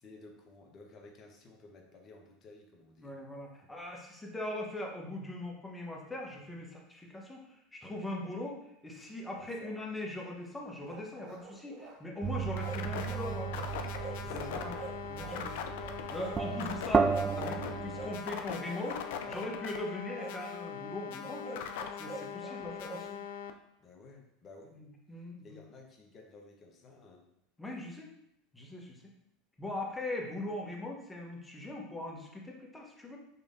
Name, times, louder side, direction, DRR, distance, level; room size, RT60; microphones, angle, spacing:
voice 1, 0.0-3.2 9.4-9.8 14.1-15.0 23.8-24.8 25.1-27.2, left 3 dB, 40° left, 1 dB, 1.0 m, -54 dB
voice 2, 3.0-13.7 14.3-14.8 15.1-15.6 16.1-21.6 22.0-23.2 24.7-25.6 27.6-28.1 28.5-29.0 29.6-33.2, left 1 dB, 10° left, -1 dB, 1.1 m, -40 dB
sound 1, 10.9-12.0 12.3-13.3 13.6-14.2 14.5-15.5 15.8-16.6 17.1-17.4 17.9-18.2 18.7-19.5 20.1-20.4 21.2-23.1, right 3 dB, 50° right, 0.9 m, -46 dB
sound 2, 12.2-18.2, right 6 dB, 25° right, 0.3 m, -34 dB
sound 3, 12.6-23.5, left 8 dB, 75° left, 0.4 m, -40 dB
5.4 x 3.2 x 2.7 m, 0.79 s
hypercardioid pair, 90°, 0 cm